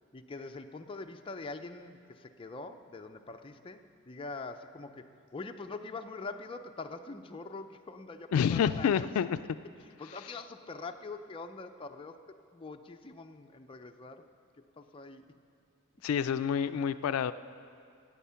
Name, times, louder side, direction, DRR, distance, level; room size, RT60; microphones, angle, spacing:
voice 1, 0.1-5.1 5.3-9.1 10.0-12.2 12.5-14.3 14.8-15.2, left 3 dB, 25° left, 5 dB, 0.5 m, -43 dB
voice 2, 8.3-9.4 16.0-17.3, left 7 dB, 80° left, 13 dB, 0.3 m, -28 dB
15.5 x 8.7 x 5.7 m, 2.4 s
head